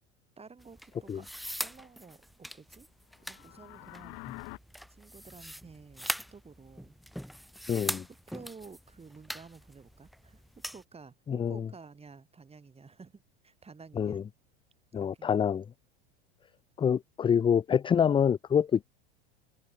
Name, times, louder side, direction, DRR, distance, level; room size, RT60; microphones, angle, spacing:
voice 1, 0.4-1.3 1.6-2.9 3.2-4.2 4.9-6.9 8.1-14.2 14.9-15.3, right 4 dB, 20° right, 5.5 m, -52 dB
sound 1, 0.6-10.8, equal, ahead, 1.6 m, -41 dB
sound 2, 3.2-4.6, left 35 dB, 60° left, 1.5 m, -46 dB
voice 2, 7.7-8.0 11.3-11.5 14.0-14.2 14.9-15.6 16.8-18.9, left 7 dB, 15° left, 0.5 m, -26 dB
hypercardioid pair, 95°, 32 cm